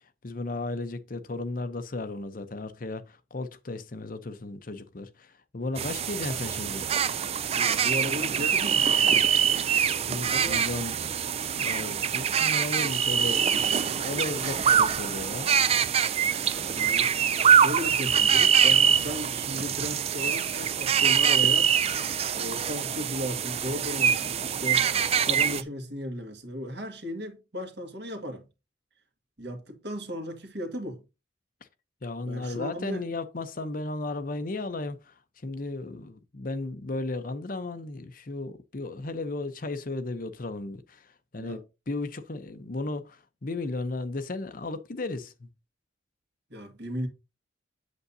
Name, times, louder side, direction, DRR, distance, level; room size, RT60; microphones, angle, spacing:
voice 1, 0.2-6.9 10.1-10.9 11.6-15.5 32.0-35.1 35.4-41.0 41.3-45.5, left 2 dB, 45° left, 0.7 m, -35 dB
sound 1, 5.8-25.6, right 8 dB, 30° right, 0.4 m, -24 dB
sound 2, 6.2-17.8, right 3 dB, 80° right, 2.1 m, -50 dB
voice 2, 7.5-9.3 10.3-10.6 16.7-21.7 22.3-24.8 25.2-28.4 29.4-31.0 32.2-33.1 41.4-41.6 46.5-47.1, left 1 dB, 55° right, 1.9 m, -36 dB
8.1 x 7.0 x 2.7 m
head